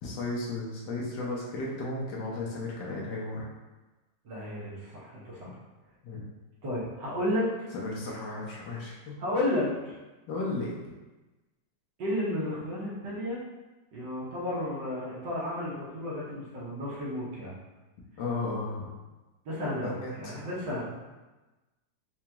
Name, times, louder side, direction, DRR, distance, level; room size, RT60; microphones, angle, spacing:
voice 1, 0.0-3.5 6.0-6.3 7.7-9.1 10.3-10.9 18.2-18.9 19.8-20.5, left 2 dB, 90° left, -4 dB, 1.4 m, -34 dB
voice 2, 4.2-5.5 6.6-7.5 9.2-9.9 12.0-13.4 13.9-17.5 19.4-20.9, left 1 dB, 80° right, -7 dB, 1.7 m, -32 dB
4.8 x 2.3 x 2.9 m, 1.1 s
omnidirectional pair, 1.9 m